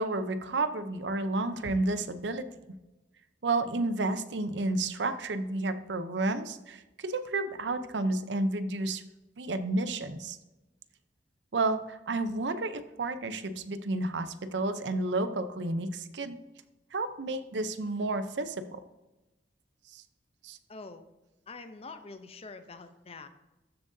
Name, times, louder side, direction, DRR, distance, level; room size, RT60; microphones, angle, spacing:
voice 1, 0.0-2.5 3.4-9.0 9.4-10.4 11.5-16.4 16.9-18.8 19.9-20.0 20.4-20.6, right 2 dB, 80° right, 11 dB, 0.7 m, -31 dB
voice 2, 20.7-21.1 21.5-23.3, left 3 dB, 35° left, 10 dB, 0.6 m, -45 dB
13.0 x 7.4 x 2.7 m, 1.0 s
head